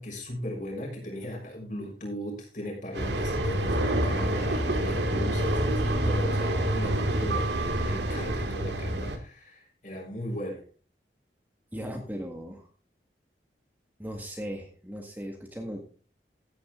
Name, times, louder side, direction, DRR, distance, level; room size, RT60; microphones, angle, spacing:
voice 1, 0.0-10.6, equal, 45° left, -2 dB, 6.5 m, -37 dB
sound 1, 2.9-9.2, right 1 dB, 85° right, 2.2 m, -27 dB
voice 2, 11.7-12.7 14.0-15.8, equal, 10° right, 2 dB, 1.8 m, -37 dB
15.5 x 9.6 x 3.8 m, 0.38 s
head